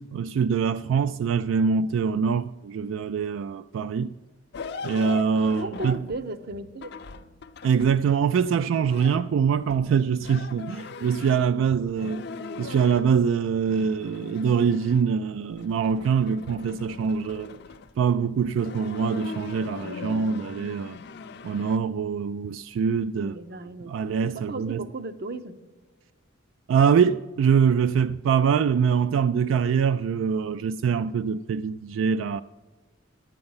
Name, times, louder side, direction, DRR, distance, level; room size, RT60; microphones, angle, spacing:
voice 1, 0.0-4.1 4.8-6.0 7.6-12.2 12.6-17.6 18.0-21.0 21.4-23.3 23.9-24.9 26.7-32.4, right 6 dB, 85° right, 0.3 m, -24 dB
sound 1, 4.5-8.1 8.9-11.6 11.9-13.1 13.4-15.2 15.5-17.9 18.4-21.8, left 5 dB, 55° left, 0.5 m, -40 dB
voice 2, 5.6-6.9 19.7-20.4 23.1-23.9 24.3-25.6, right 2 dB, 55° right, 0.6 m, -36 dB
10.5 x 8.8 x 5.5 m
head